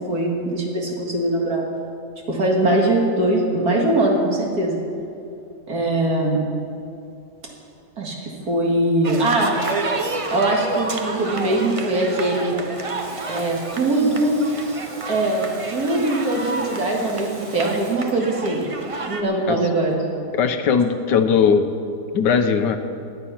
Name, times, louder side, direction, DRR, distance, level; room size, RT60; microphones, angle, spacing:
voice 1, 0.0-1.6 2.3-4.8 5.7-6.4 8.0-9.5 10.3-12.6 13.3-14.4 15.1-15.4 15.7-18.6 19.1-20.0, right 2 dB, 60° right, -1 dB, 2.6 m, -21 dB
sound 1, 9.0-19.2, right 3 dB, 35° right, 0.5 m, -30 dB
Water tap faucet / Sink (filling or washing) / Liquid, 12.5-18.0, right 2 dB, 80° right, 3.6 m, -45 dB
voice 2, 20.3-21.7 22.1-22.8, left 6 dB, 85° left, 8 dB, 1.5 m, -18 dB
16.0 x 10.5 x 5.8 m, 2.6 s
omnidirectional pair, 1.8 m